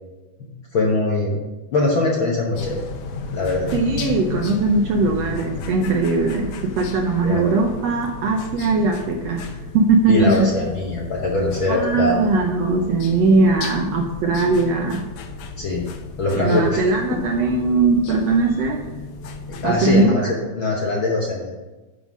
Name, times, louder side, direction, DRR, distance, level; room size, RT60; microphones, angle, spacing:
voice 1, 0.7-1.4 1.7-2.8 3.3-3.7 7.2-7.4 10.1-12.3 15.6-15.8 16.2-16.8 19.5-20.2 20.5-21.5, left 2 dB, 60° left, -2 dB, 1.3 m, -21 dB
sound 1, 2.5-20.0, left 4 dB, 85° left, 1.2 m, -34 dB
voice 2, 3.7-9.5 9.7-10.5 11.7-15.1 16.3-18.9 19.6-20.3, right 3 dB, 75° right, 2 dB, 1.6 m, -20 dB
10.5 x 3.9 x 6.1 m, 1.2 s
omnidirectional pair, 3.6 m